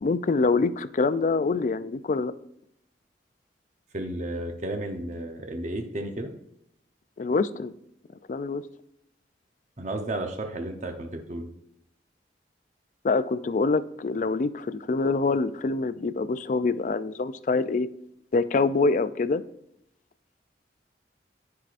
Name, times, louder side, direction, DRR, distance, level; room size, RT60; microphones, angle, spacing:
voice 1, 0.0-2.3 7.2-7.7 8.3-8.6 13.0-17.9 18.3-19.4, left 3 dB, 45° left, 14 dB, 0.4 m, -25 dB
voice 2, 3.9-6.3 9.8-11.5, right 1 dB, 40° right, 4 dB, 0.8 m, -33 dB
14.0 x 4.7 x 2.5 m, 0.77 s
head